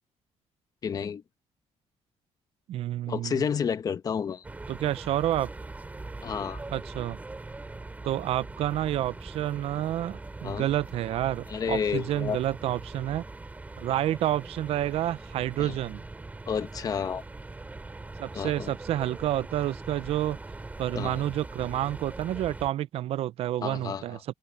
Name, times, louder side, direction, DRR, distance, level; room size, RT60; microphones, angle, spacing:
voice 1, 0.8-1.2 3.1-4.5 6.2-6.6 10.4-10.7 11.5-12.4 15.6-15.8 16.5-17.2 18.3-18.7 20.9-21.2 23.6-24.2, left 7 dB, 30° left, 0.9 m, -30 dB
voice 2, 2.7-3.4 4.7-5.5 6.7-7.2 8.0-13.2 13.8-16.0 18.2-20.4 20.8-24.3, right 13 dB, 60° right, 0.5 m, -29 dB
sound 1, 4.4-22.7, right 2 dB, 15° right, 4.1 m, -42 dB
open air
cardioid pair, 175°, 12 cm